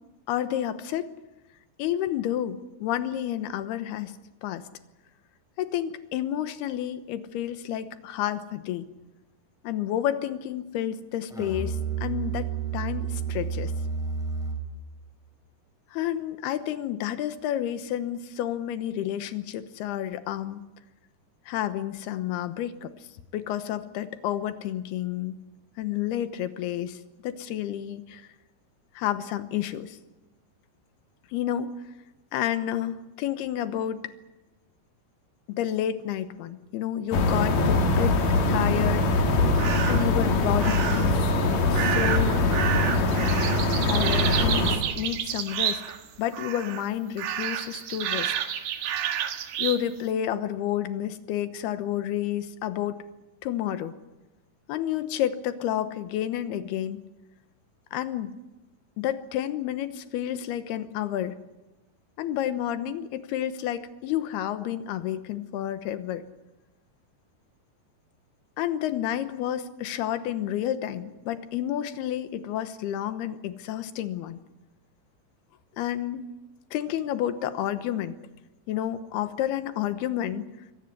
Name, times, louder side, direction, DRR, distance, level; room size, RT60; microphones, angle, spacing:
voice 1, 0.3-1.1 1.8-4.1 4.4-4.6 5.6-8.9 9.6-13.7 15.9-20.6 21.5-22.9 23.3-25.4 25.8-28.3 28.9-30.0 31.3-31.7 32.3-34.1 35.5-38.2 38.5-39.4 39.9-41.3 41.7-42.4 43.9-45.8 46.2-48.3 49.6-53.0 53.4-53.9 54.7-57.0 57.9-58.3 59.0-61.4 62.2-66.2 68.6-74.4 75.8-76.2 76.7-78.2 78.7-80.4, left 11 dB, 90° left, 12 dB, 3.1 m, -30 dB
Musical instrument, 11.3-14.8, right 6 dB, ahead, 3.3 m, -31 dB
sound 1, 37.1-44.8, left 2 dB, 60° left, 3.6 m, -23 dB
sound 2, 39.6-40.1 40.6-41.2 41.7-46.1 46.3-46.9 47.2-49.8, right 10 dB, 80° right, 3.4 m, -30 dB
23.5 x 17.5 x 9.9 m, 1.0 s
omnidirectional pair, 4.5 m